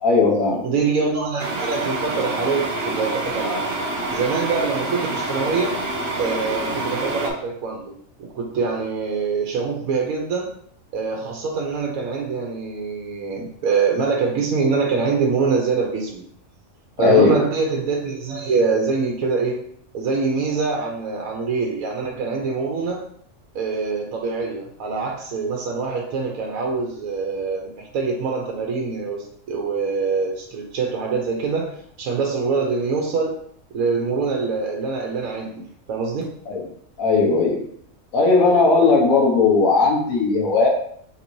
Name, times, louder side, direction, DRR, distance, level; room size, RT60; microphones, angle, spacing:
voice 1, 0.0-0.6 17.0-17.4 36.5-36.6 37.0-37.6 38.1-40.7, left 4 dB, 85° left, -1 dB, 1.4 m, -17 dB
voice 2, 0.6-3.7 4.1-5.8 6.2-7.9 8.2-10.5 10.9-16.2 17.0-19.6 19.9-23.0 23.5-33.3 33.7-36.3, right 4 dB, 85° right, 0 dB, 1.2 m, -24 dB
sound 1, 1.4-7.3, right 2 dB, 55° right, 0.9 m, -27 dB
3.7 x 2.7 x 4.5 m, 0.64 s
omnidirectional pair, 1.4 m